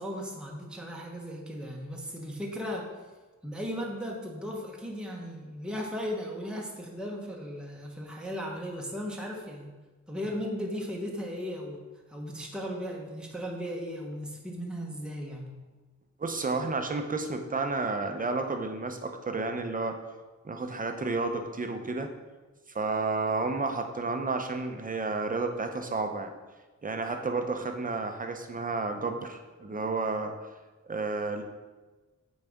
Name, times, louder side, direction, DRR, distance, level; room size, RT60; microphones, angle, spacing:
voice 1, 0.0-2.9 3.4-9.8 10.1-15.5, equal, 5° right, -1 dB, 0.9 m, -36 dB
voice 2, 16.2-20.0 20.4-22.1 22.7-26.3 26.8-30.3 30.9-31.4, right 3 dB, 30° right, 5 dB, 0.7 m, -31 dB
8.8 x 4.0 x 3.5 m, 1.3 s
wide cardioid pair, 105°, 30 cm